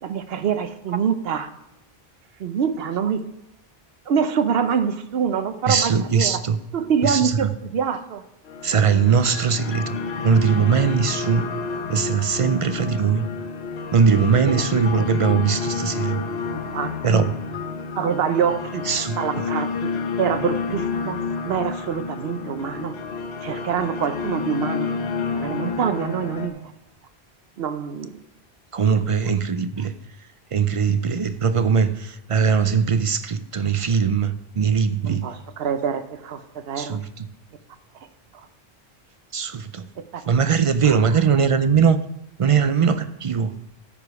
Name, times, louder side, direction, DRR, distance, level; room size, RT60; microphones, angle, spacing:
voice 1, 0.0-1.5 2.4-3.2 4.1-6.4 6.7-8.2 14.5-14.7 14.9-15.1 16.5-16.9 17.9-18.9 19.2-21.2 21.4-23.0 23.4-24.9 25.3-26.6 27.6-28.2 28.9-29.0 35.0-37.0 40.0-40.2 40.8-41.0, right 7 dB, 75° right, 11 dB, 0.9 m, -25 dB
voice 2, 5.7-6.6 7.0-7.5 8.6-10.0 10.2-11.6 11.9-13.3 13.9-16.2 17.0-17.3 18.9-19.5 28.7-29.9 30.5-35.3 36.8-37.3 39.3-39.9 40.3-42.0 42.4-43.6, right 6 dB, 50° right, 11 dB, 0.4 m, -20 dB
sound 1, 8.5-26.5, left 5 dB, 85° left, 1.1 m, -29 dB
13.5 x 5.0 x 4.7 m, 0.87 s
omnidirectional pair, 1.0 m